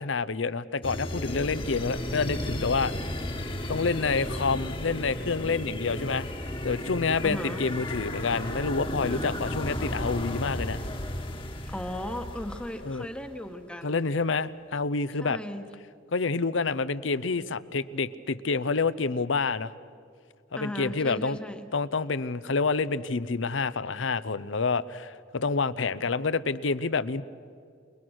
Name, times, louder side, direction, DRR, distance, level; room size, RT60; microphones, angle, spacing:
voice 1, 0.0-2.9 3.7-6.3 6.6-10.8 12.8-13.1 13.8-15.4 16.1-19.7 20.5-21.4 21.7-27.2, left 4 dB, 80° left, 16 dB, 0.7 m, -28 dB
sound 1, 0.8-13.1, left 1 dB, 25° left, 1.4 m, -34 dB
voice 2, 7.2-7.7 11.6-14.0 15.2-15.6 20.5-21.7, left 1 dB, 5° left, 6 dB, 1.1 m, -36 dB
28.0 x 21.0 x 6.4 m, 2.2 s
head